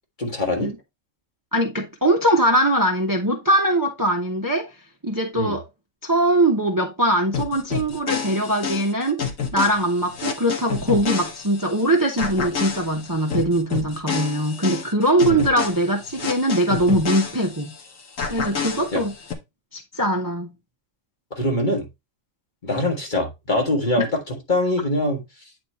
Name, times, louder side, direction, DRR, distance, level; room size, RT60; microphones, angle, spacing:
voice 1, 0.2-0.7 5.3-5.6 15.3-15.4 18.9-19.0 21.3-21.9 22.6-25.3, left 1 dB, 40° left, 1.7 m, -23 dB
voice 2, 1.5-4.7 5.0-5.6 6.0-9.2 9.5-17.7 18.3-19.1 19.7-20.5 24.0-24.1, right 1 dB, 20° right, 0.8 m, -21 dB
sound 1, 7.3-11.8 12.2-17.8 18.2-19.3, left 6 dB, 80° left, 1.6 m, -29 dB
8.9 x 4.2 x 3.1 m
omnidirectional pair, 1.3 m